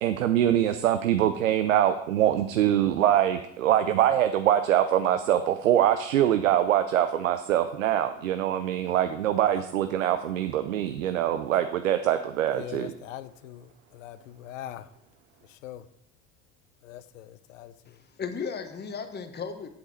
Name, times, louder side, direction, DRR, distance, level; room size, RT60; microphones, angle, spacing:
voice 1, 0.0-12.9, right 11 dB, 85° right, 0.5 m, -24 dB
voice 2, 12.5-14.9 15.5-15.8 16.8-17.7, left 12 dB, 75° left, 0.6 m, -42 dB
voice 3, 17.9-19.7, left 5 dB, 25° left, 1.0 m, -35 dB
8.6 x 7.6 x 4.1 m
hypercardioid pair, 65°, 38 cm